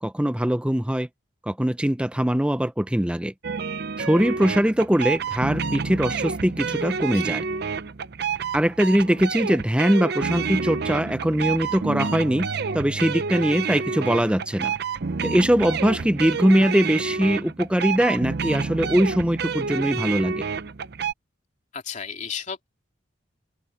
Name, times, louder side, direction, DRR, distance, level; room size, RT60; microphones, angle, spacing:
voice 1, 0.0-1.1 1.5-3.3 4.0-7.4 8.5-12.5 12.7-14.7 15.2-20.4, equal, 5° right, 0.6 m, -22 dB
sound 1, 3.4-21.1, right 5 dB, 55° right, 0.6 m, -29 dB
voice 2, 21.7-22.7, left 6 dB, 40° left, 3.2 m, -33 dB
head